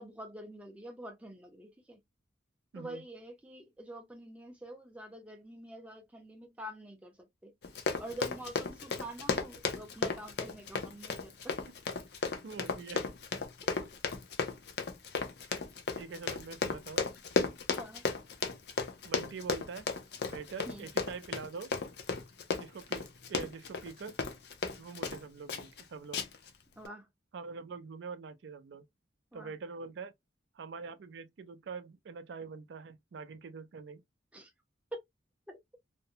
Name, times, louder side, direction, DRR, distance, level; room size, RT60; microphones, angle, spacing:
voice 1, 0.0-2.0 2.8-7.1 7.4-7.5 8.0-11.6 13.6-13.8 17.8-18.0 20.7-20.9 26.8-27.1 29.3-29.5 34.3-34.5 34.9-35.0 35.5-35.6, right 1 dB, 5° right, 0.5 m, -46 dB
voice 2, 2.7-3.1 11.6-11.7 12.2-13.1 15.5-15.6 16.0-17.1 19.0-19.9 20.2-21.7 22.6-24.2 24.8-26.2 27.3-28.9 29.3-30.1 30.5-34.0, right 4 dB, 65° right, 0.4 m, -44 dB
Run, 7.6-25.2 25.5-25.8 26.1-26.5 26.8-26.9, left 4 dB, 55° left, 0.5 m, -34 dB
2.5 x 2.0 x 2.7 m
head